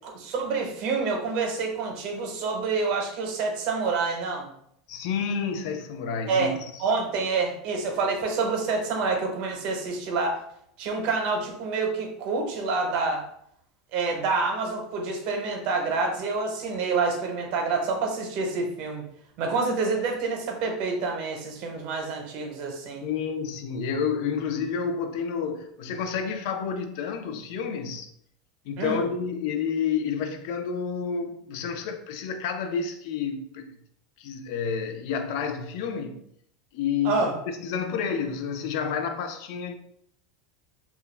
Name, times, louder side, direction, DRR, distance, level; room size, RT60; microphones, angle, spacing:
voice 1, 0.0-4.5 6.3-6.5 6.8-10.4 10.8-13.3 13.9-19.0 19.4-23.1 28.8-29.0 37.0-37.3, right 4 dB, 55° right, 0.7 m, -27 dB
voice 2, 4.9-6.5 23.0-28.1 28.7-33.7 34.2-36.2 36.7-39.7, left 6 dB, 65° left, 0.3 m, -30 dB
2.2 x 2.1 x 3.2 m
supercardioid pair, 135°, 2 cm